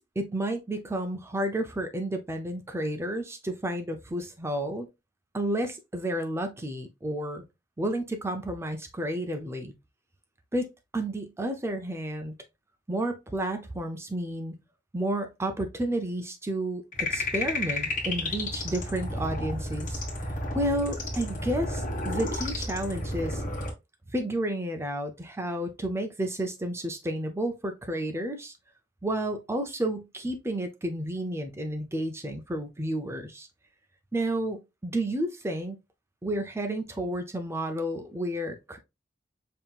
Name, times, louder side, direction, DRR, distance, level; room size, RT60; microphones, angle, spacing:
voice 1, 0.0-4.9 5.3-7.4 7.8-9.7 10.5-10.7 10.9-12.3 12.9-14.6 14.9-20.0 20.5-23.4 24.1-28.5 29.0-33.5 34.1-35.8 36.2-38.8, right 1 dB, 15° right, 0.5 m, -31 dB
sound 1, 16.9-23.7, left 1 dB, 45° left, 1.2 m, -32 dB
5.5 x 2.8 x 2.3 m
head